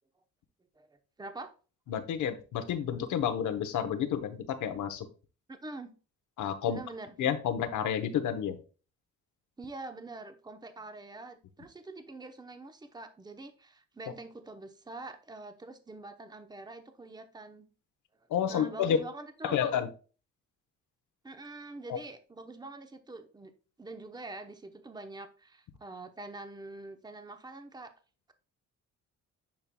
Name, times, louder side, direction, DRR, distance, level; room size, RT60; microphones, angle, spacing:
voice 1, 1.2-1.5 5.5-5.9 6.6-7.1 9.6-17.7 18.5-19.6 21.2-23.5 23.8-27.9, right 2 dB, 15° right, 7 dB, 0.9 m, -45 dB
voice 2, 1.9-5.1 6.4-6.8 7.2-8.6 18.3-19.0 19.4-19.9 21.9-22.0, left 8 dB, 75° left, 9 dB, 1.0 m, -30 dB
10.5 x 4.6 x 2.3 m, 0.35 s
cardioid pair, 90°, 30 cm